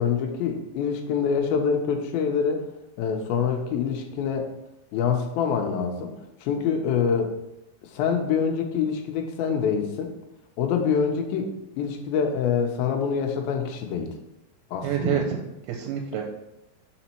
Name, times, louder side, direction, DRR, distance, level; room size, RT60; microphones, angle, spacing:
voice 1, 0.0-2.6 3.0-4.5 4.9-6.1 6.4-7.3 7.9-10.1 10.6-11.5 11.8-14.1 14.7-15.2, left 6 dB, 80° left, 4 dB, 2.4 m, -25 dB
voice 2, 14.8-16.2, right 8 dB, 90° right, 1 dB, 2.6 m, -27 dB
6.0 x 4.1 x 4.3 m, 0.88 s
omnidirectional pair, 4.5 m